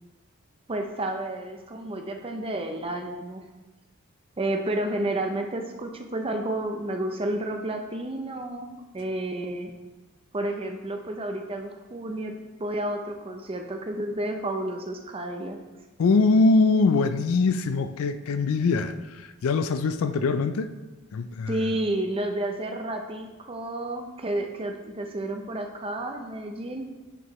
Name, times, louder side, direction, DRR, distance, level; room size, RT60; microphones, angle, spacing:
voice 1, 0.7-3.4 4.4-9.7 10.3-15.6 21.5-26.8, right 1 dB, 25° right, 4 dB, 0.5 m, -31 dB
voice 2, 16.0-20.7 21.1-21.8, left 3 dB, 70° left, 11 dB, 0.4 m, -23 dB
8.8 x 4.7 x 3.1 m, 1.2 s
head